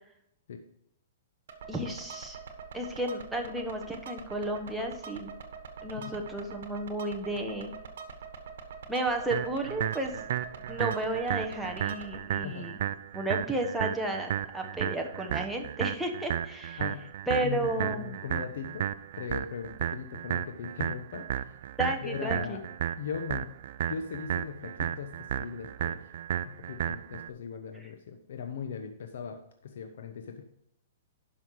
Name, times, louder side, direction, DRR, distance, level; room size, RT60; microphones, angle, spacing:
sound 1, 1.5-12.2, right 5 dB, 75° right, 1.4 m, -44 dB
voice 1, 1.7-2.4 2.7-5.3 5.8-7.7 8.9-10.1 10.7-12.9 13.1-16.8 17.3-18.2 21.8-22.6 27.8-27.9, right 1 dB, ahead, 0 dB, 1.2 m, -33 dB
sound 2, 9.3-27.3, right 11 dB, 60° right, 0.4 m, -34 dB
voice 2, 12.4-12.7 16.8-17.1 17.4-18.9 19.2-21.6 22.0-22.6 23.0-23.5 23.9-26.0 26.4-29.4 29.6-30.4, left 7 dB, 70° left, 5 dB, 1.0 m, -39 dB
11.0 x 5.7 x 4.8 m, 0.76 s
hypercardioid pair, 155°, 0 cm